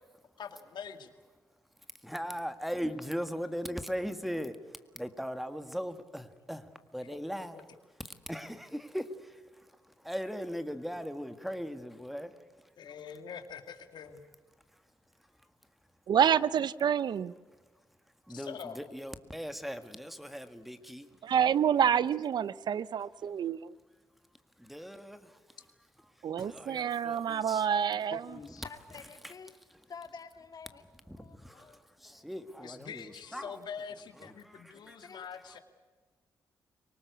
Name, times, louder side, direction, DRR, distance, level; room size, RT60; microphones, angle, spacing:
voice 1, 0.4-1.1 7.5-7.6 12.8-14.2 18.3-18.8 32.6-35.6, left 7 dB, 70° left, 2.2 m, -44 dB
voice 2, 2.0-4.6 5.0-7.7 8.0-12.4 14.7-14.8 15.4-15.5 18.3-21.2 24.6-25.6 26.2-27.7 29.2-29.3 29.7-29.9 31.1-33.6 34.2-35.2, equal, ahead, 1.8 m, -39 dB
voice 3, 16.1-17.3 21.2-23.7 26.2-28.2, right 8 dB, 70° right, 0.7 m, -28 dB
voice 4, 28.1-29.5 29.9-30.8 31.2-31.8 32.2-32.3 33.3-33.4 34.7-35.3, left 5 dB, 55° left, 2.4 m, -48 dB
24.5 x 19.0 x 8.3 m
cardioid pair, 75°, 8 cm